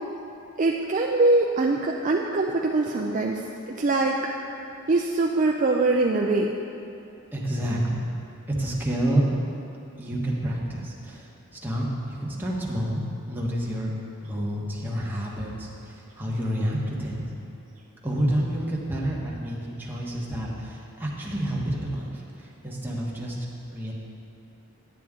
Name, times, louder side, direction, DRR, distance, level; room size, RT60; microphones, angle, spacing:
voice 1, 0.6-4.3 4.9-6.5, right 2 dB, 35° right, 0 dB, 0.4 m, -23 dB
voice 2, 7.3-8.0 8.5-9.3 10.0-11.3 11.6-13.9 14.2-17.2 18.0-23.4 23.7-23.9, right 1 dB, 10° right, -4 dB, 1.1 m, -29 dB
9.3 x 9.3 x 3.7 m, 2.8 s
head